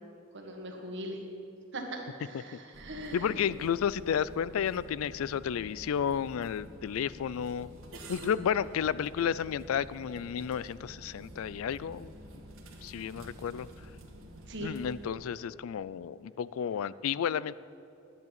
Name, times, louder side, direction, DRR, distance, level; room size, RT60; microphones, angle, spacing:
voice 1, 0.3-1.2 1.7-3.3 14.5-14.7, right 1 dB, 60° right, 2 dB, 1.7 m, -40 dB
sound 1, 2.7-15.1, equal, 75° right, 1.8 m, -49 dB
voice 2, 3.1-7.7 8.1-12.1 12.8-13.7 14.6-17.5, left 8 dB, 80° left, 19 dB, 0.3 m, -32 dB
10.5 x 8.2 x 8.9 m, 2.6 s
head